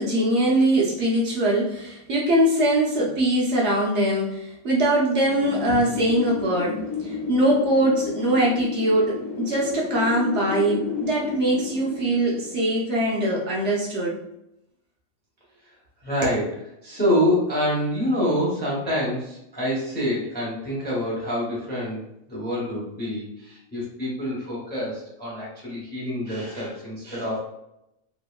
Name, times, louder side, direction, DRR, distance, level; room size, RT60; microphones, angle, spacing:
voice 1, 0.0-6.8 7.0-14.1 16.2-16.3, right 1 dB, 65° right, -3 dB, 0.8 m, -22 dB
Wind, 5.3-14.0, left 5 dB, 85° left, 1.0 m, -33 dB
voice 2, 16.0-16.4 16.8-22.0 22.3-27.4, equal, 10° left, -5 dB, 0.6 m, -26 dB
2.8 x 2.5 x 2.3 m, 0.83 s
omnidirectional pair, 1.4 m